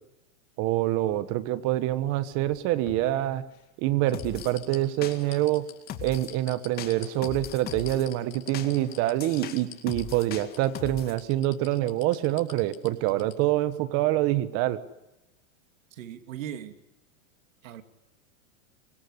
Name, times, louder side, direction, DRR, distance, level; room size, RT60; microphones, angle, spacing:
voice 1, 0.6-3.4 3.8-5.7 6.0-14.8, right 15 dB, 35° right, 14 dB, 1.4 m, -26 dB
sound 1, 2.3-3.6 4.1-13.3 13.7-13.8, left 12 dB, 65° left, 5.2 m, -45 dB
sound 2, 4.1-4.5 5.0-5.5 5.9-6.3 6.8-8.1 8.5-11.2, left 9 dB, 25° left, 2.3 m, -40 dB
voice 2, 15.9-16.7 17.6-17.8, right 10 dB, 70° right, 8 dB, 2.6 m, -38 dB
24.5 x 22.5 x 9.9 m, 0.94 s
supercardioid pair, 155°, 41 cm